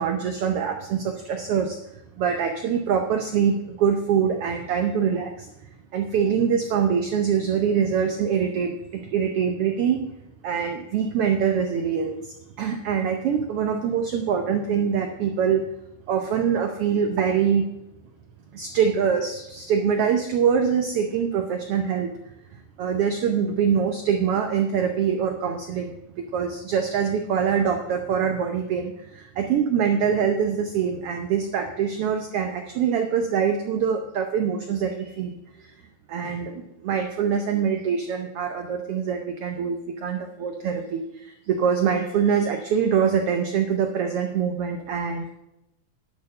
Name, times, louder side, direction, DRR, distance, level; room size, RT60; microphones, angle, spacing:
voice 1, 0.0-1.8 2.2-5.5 5.9-10.1 10.4-15.6 16.1-17.6 18.5-22.1 22.5-35.7 36.1-45.2, right 7 dB, 75° right, 5 dB, 1.3 m, -24 dB
10.5 x 6.7 x 5.4 m, 0.86 s
omnidirectional pair, 3.5 m